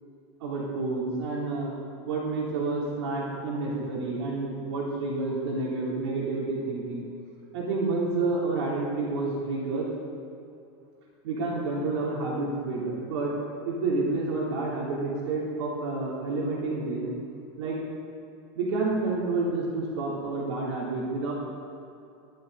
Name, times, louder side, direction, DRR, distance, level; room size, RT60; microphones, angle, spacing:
voice 1, 0.4-1.7 2.0-7.1 7.5-9.9 11.2-13.4 13.6-17.1 17.6-17.8 18.5-21.3, right 3 dB, 85° right, -4 dB, 3.1 m, -29 dB
12.5 x 12.0 x 4.0 m, 2.6 s
supercardioid pair, 170°, 14 cm